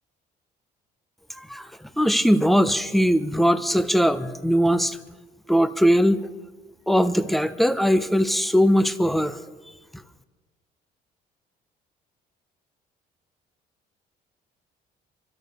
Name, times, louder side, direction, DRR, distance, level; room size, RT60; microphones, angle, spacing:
voice 1, 1.4-1.7 2.0-5.0 5.5-6.3 6.9-9.4, equal, ahead, 11 dB, 0.9 m, -20 dB
25.5 x 13.0 x 3.6 m, 1.2 s
cardioid pair, 110°, 17 cm